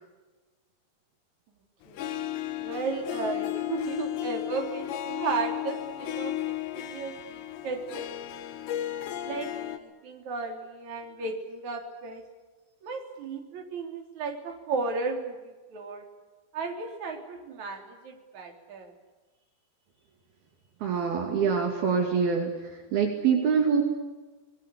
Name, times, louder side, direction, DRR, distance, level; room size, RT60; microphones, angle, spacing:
Harp, 1.9-9.8, left 12 dB, 80° left, 3.7 m, -34 dB
voice 1, 2.6-8.1 9.2-12.2 12.8-16.0 16.5-18.9, right 4 dB, 45° right, 3 dB, 4.6 m, -35 dB
voice 2, 20.8-23.8, right 6 dB, 65° right, 3 dB, 4.2 m, -25 dB
27.5 x 21.5 x 8.5 m, 1.2 s
omnidirectional pair, 5.0 m